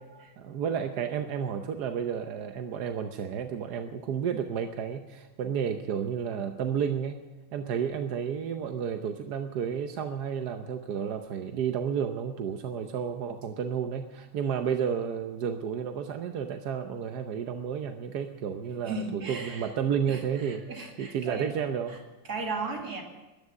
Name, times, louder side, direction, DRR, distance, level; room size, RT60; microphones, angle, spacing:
voice 1, 0.4-7.2 7.5-20.7 21.0-22.0, right 7 dB, 60° right, 6 dB, 1.1 m, -31 dB
voice 2, 18.8-19.7 20.1-21.5 21.9-22.0 22.2-23.0, right 3 dB, 45° right, 2 dB, 2.5 m, -36 dB
13.5 x 10.5 x 9.5 m, 1.1 s
omnidirectional pair, 2.4 m